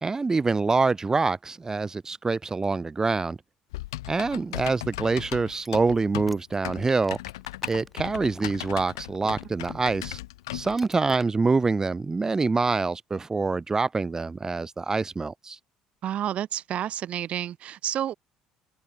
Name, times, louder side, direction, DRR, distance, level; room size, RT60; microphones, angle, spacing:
voice 1, 0.0-3.4 4.1-7.2 7.7-10.2 10.5-15.6, right 4 dB, 25° right, 1.1 m, -25 dB
Typing, 3.7-10.8, left 17 dB, 90° left, 0.6 m, -37 dB
sound 1, 5.6-10.1 10.7-11.2, equal, ahead, 5.1 m, -40 dB
voice 2, 16.0-18.1, right 11 dB, 55° right, 0.5 m, -30 dB
hypercardioid pair, 70°, 3 cm